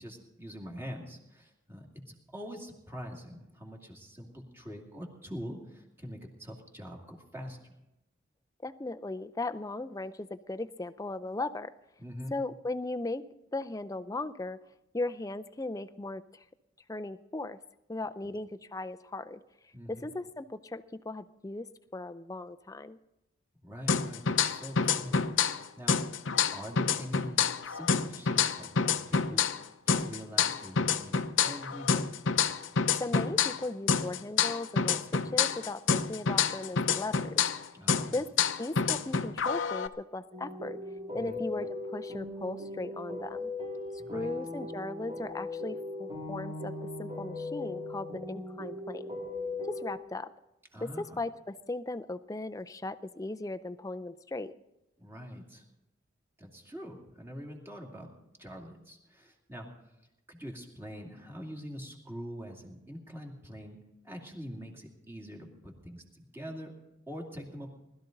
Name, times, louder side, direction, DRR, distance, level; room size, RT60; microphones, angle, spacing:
voice 1, 0.0-7.7 12.0-12.4 19.7-20.1 23.6-26.0 26.5-29.5 29.9-32.1 35.2-35.3 37.7-38.2 41.1-41.4 44.0-44.3 50.7-51.2 55.0-55.6 56.4-58.1 58.4-59.7 60.3-66.7 67.1-67.7, equal, 10° right, -1 dB, 2.6 m, -44 dB
voice 2, 8.6-11.7 12.3-13.2 13.5-14.6 14.9-16.4 16.9-17.6 17.9-19.4 19.9-21.7 21.9-23.0 33.0-37.4 38.1-38.3 38.6-40.8 41.1-41.7 41.9-43.5 44.1-46.7 47.0-49.1 49.7-50.3 50.8-54.6, left 2 dB, 15° left, 11 dB, 0.5 m, -37 dB
sound 1, 23.9-25.6 25.9-29.6 29.9-33.6 33.9-37.6 37.9-39.9, left 6 dB, 75° left, 0.7 m, -27 dB
sound 2, 40.3-50.0, left 2 dB, 30° right, 2.7 m, -39 dB
20.5 x 13.0 x 3.9 m, 0.90 s
head